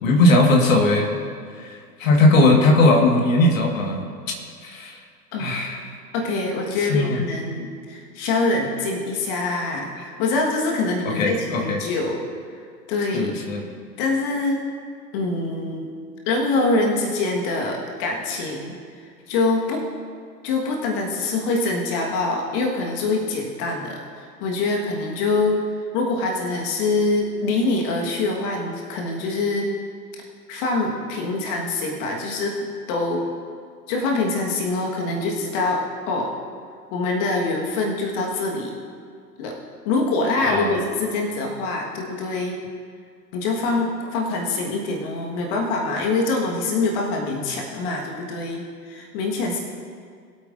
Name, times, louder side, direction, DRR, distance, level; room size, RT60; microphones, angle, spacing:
voice 1, 0.0-1.1 1.6-4.0 4.6-5.0 5.4-5.8 6.9-7.2 11.1-11.8 13.1-13.7 40.4-40.8, left 2 dB, 50° left, 2 dB, 1.7 m, -18 dB
voice 2, 6.1-12.2 12.9-13.3 14.0-14.6 15.1-15.9 16.2-18.7 19.3-19.8 20.4-25.6 25.9-29.7 30.5-33.3 33.9-36.3 36.9-38.7 39.4-39.5 39.8-42.6 43.3-49.6, left 3 dB, 30° left, 0 dB, 1.5 m, -24 dB
21.5 x 8.2 x 2.6 m, 2.1 s
figure-of-eight pair, 110°, 50 cm